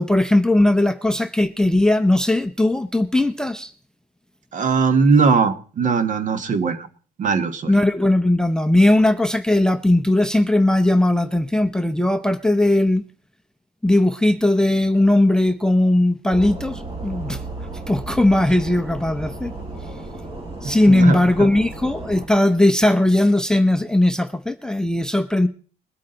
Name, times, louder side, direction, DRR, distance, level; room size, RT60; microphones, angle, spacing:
voice 1, 0.0-3.7 7.7-13.0 13.8-17.4 17.9-19.5 20.6-25.5, left 1 dB, 5° left, 0.6 m, -18 dB
voice 2, 4.5-6.9 7.2-7.7 20.6-21.5, right 4 dB, 50° right, 1.3 m, -20 dB
sound 1, 16.3-22.3, right 2 dB, 35° right, 2.9 m, -34 dB
21.0 x 8.3 x 3.9 m
cardioid pair, 110°, 17 cm